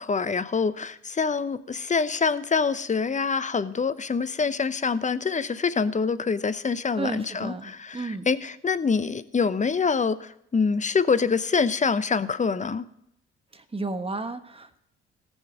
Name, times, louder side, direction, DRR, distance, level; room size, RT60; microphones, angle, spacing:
voice 1, 0.0-12.8, left 5 dB, 20° left, 15 dB, 0.8 m, -25 dB
voice 2, 7.0-8.3 13.5-14.8, right 3 dB, 15° right, 8 dB, 1.4 m, -33 dB
18.5 x 6.3 x 3.9 m, 0.75 s
figure-of-eight pair, 50°, 33 cm